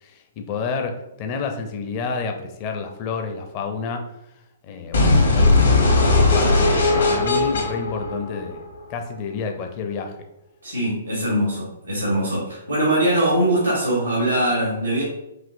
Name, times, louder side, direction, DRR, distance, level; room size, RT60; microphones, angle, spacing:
voice 1, 0.0-4.0 4.6-8.6 8.9-10.1, left 5 dB, 35° left, 4 dB, 0.5 m, -30 dB
sound 1, 4.9-8.9, left 3 dB, 65° left, 1.0 m, -18 dB
voice 2, 10.6-15.0, right 1 dB, 90° right, -5 dB, 1.3 m, -22 dB
5.1 x 2.8 x 2.6 m, 0.89 s
figure-of-eight pair, 120°, 0 cm